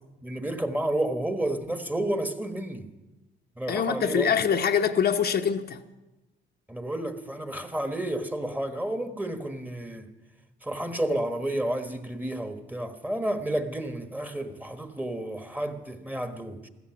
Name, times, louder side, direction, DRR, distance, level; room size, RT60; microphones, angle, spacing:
voice 1, 0.2-2.9 3.6-4.3 6.7-10.1 10.6-16.7, right 1 dB, 10° right, 1.3 m, -31 dB
voice 2, 3.7-5.8, left 7 dB, 55° left, 0.9 m, -24 dB
15.5 x 13.5 x 6.0 m
cardioid pair, 90°, 20 cm